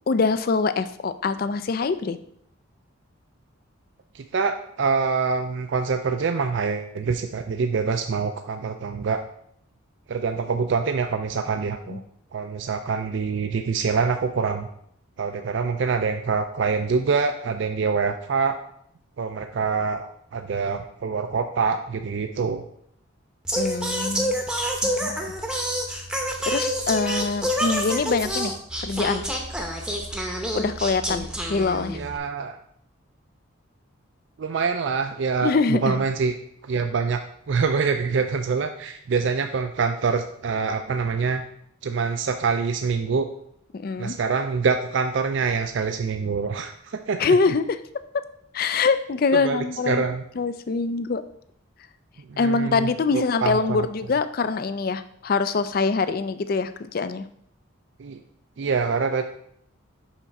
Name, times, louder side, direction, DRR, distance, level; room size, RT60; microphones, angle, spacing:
voice 1, 0.1-2.2 11.9-12.0 23.6-24.4 24.8-25.2 26.5-29.3 30.5-32.0 35.4-36.0 43.7-44.2 47.2-47.8 48.5-50.1 50.4-51.2 52.4-57.2, left 4 dB, 45° left, 12 dB, 0.4 m, -24 dB
voice 2, 4.1-9.2 10.1-12.0 12.3-14.7 15.2-18.6 19.2-22.6 31.9-32.6 34.4-36.3 36.6-37.2 37.5-41.4 41.8-43.3 44.0-47.2 49.4-50.2 52.3-53.9 58.0-58.2 58.6-59.2, right 5 dB, 60° right, 7 dB, 0.4 m, -25 dB
Singing, 23.5-32.2, equal, 5° right, 0.7 m, -28 dB
5.8 x 5.8 x 4.1 m, 0.70 s
head